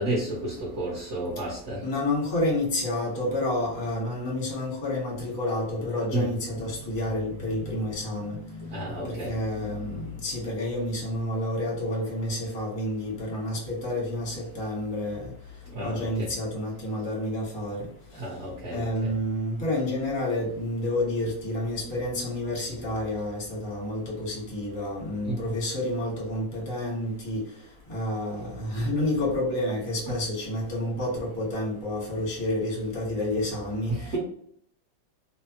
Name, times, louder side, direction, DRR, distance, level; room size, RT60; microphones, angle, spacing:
voice 1, 0.0-1.8 6.1-6.3 8.5-9.5 9.9-10.0 11.2-11.3 15.7-16.3 18.1-19.1 25.2-25.4 30.1-30.2 33.9-34.2, right 1 dB, 55° right, -7 dB, 0.8 m, -32 dB
voice 2, 1.8-8.4 9.0-15.3 15.8-17.9 18.7-27.4 27.9-34.1, left 1 dB, 25° left, -3 dB, 0.5 m, -29 dB
3.2 x 2.0 x 2.8 m, 0.63 s
omnidirectional pair, 2.1 m